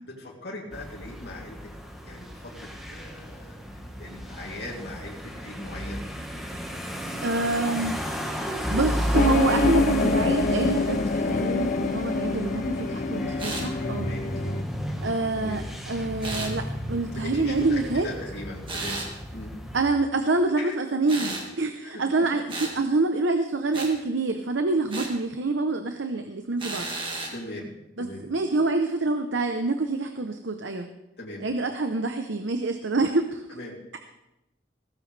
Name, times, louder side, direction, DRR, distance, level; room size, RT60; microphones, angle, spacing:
voice 1, 0.2-1.7 2.0-3.6 4.0-6.0 14.0-14.3 15.3-15.7 17.1-19.0 19.3-19.6 20.6-20.8 21.8-22.3 27.3-27.7 28.0-28.2 31.2-31.5 33.5-34.0, left 1 dB, 60° left, -3 dB, 3.1 m, -39 dB
sound 1, 0.7-19.9, equal, ahead, 1.5 m, -33 dB
voice 2, 7.2-14.1 15.0-18.1 19.7-26.9 28.0-30.9 31.4-33.4, right 3 dB, 90° right, 7 dB, 0.9 m, -26 dB
sound 2, 9.1-14.6, left 3 dB, 40° left, 0.4 m, -26 dB
sound 3, 13.4-13.7 16.2-16.5 18.7-19.1 21.1-21.5 22.5-22.8 23.7-23.9 24.9-25.1 26.6-27.3, right 2 dB, 25° right, 1.9 m, -33 dB
17.0 x 15.0 x 3.4 m, 0.90 s
head